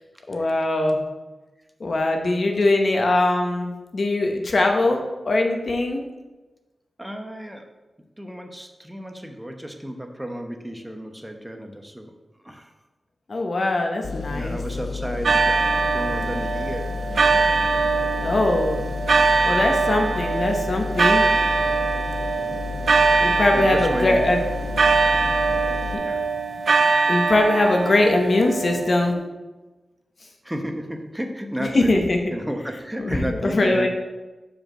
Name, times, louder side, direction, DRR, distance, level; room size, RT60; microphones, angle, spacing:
voice 1, 0.3-1.0 1.8-6.0 13.3-14.6 18.2-18.8 19.4-21.3 23.2-24.4 27.1-29.2 31.7-32.2 33.0-33.9, left 2 dB, 60° left, 3 dB, 1.0 m, -21 dB
voice 2, 7.0-7.7 8.2-12.1 12.4-12.7 14.3-17.6 23.5-24.2 26.0-26.2 30.4-32.0 32.3-33.9, equal, 10° right, 4 dB, 1.0 m, -32 dB
sound 1, 14.0-26.0, left 4 dB, 75° left, 0.4 m, -31 dB
sound 2, 15.2-29.1, right 4 dB, 75° right, 0.5 m, -22 dB
5.0 x 4.8 x 6.2 m, 1.1 s
cardioid pair, 50°, 0 cm